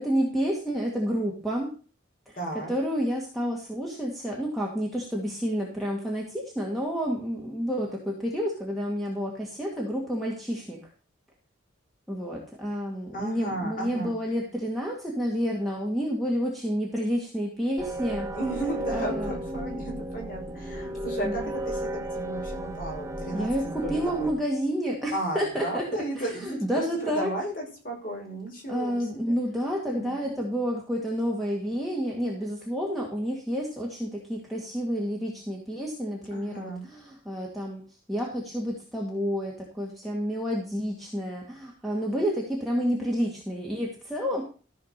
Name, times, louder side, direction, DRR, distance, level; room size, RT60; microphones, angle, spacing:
voice 1, 0.0-1.7 2.3-2.4 2.7-10.8 12.1-18.6 18.9-19.3 21.2-21.3 23.3-25.9 26.2-27.3 28.7-37.8 38.1-44.4, equal, ahead, -3 dB, 2.0 m, -29 dB
voice 2, 2.4-2.7 13.1-14.1 18.3-24.4 25.1-29.3 29.9-30.4 36.3-36.9, right 1 dB, 45° left, -1 dB, 5.5 m, -34 dB
sound 1, 17.8-24.3, right 1 dB, 15° right, 1.0 m, -34 dB
14.0 x 5.0 x 6.6 m, 0.38 s
head